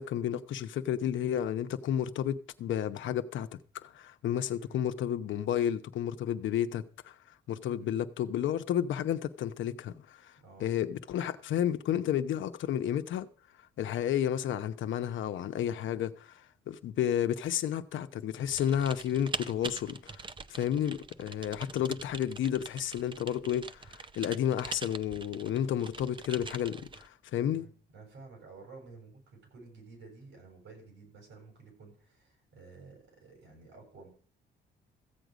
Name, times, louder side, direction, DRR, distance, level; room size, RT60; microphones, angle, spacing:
voice 1, 0.0-7.1 7.5-10.3 10.6-13.3 13.8-20.2 20.5-27.7, left 10 dB, 75° left, 0.9 m, -31 dB
voice 2, 4.5-4.9 7.7-8.0 10.4-10.7 27.4-34.1, right 4 dB, 85° right, 7.4 m, -52 dB
Typing, 18.5-27.1, right 4 dB, 25° right, 0.6 m, -43 dB
15.0 x 8.0 x 5.1 m
cardioid pair, 90°, 20 cm